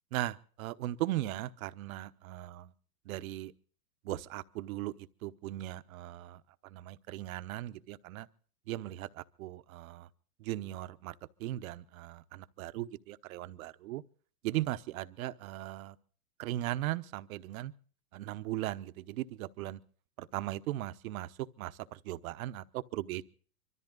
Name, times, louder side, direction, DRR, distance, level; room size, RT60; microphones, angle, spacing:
voice 1, 0.1-2.7 3.1-3.5 4.0-4.9 5.2-6.4 6.7-8.3 8.7-10.1 10.4-11.1 11.4-14.0 14.4-16.0 16.4-17.7 18.1-19.8 20.2-23.2, right 15 dB, 55° right, 1.0 m, -38 dB
24.0 x 13.5 x 3.8 m
hypercardioid pair, 140°, 49 cm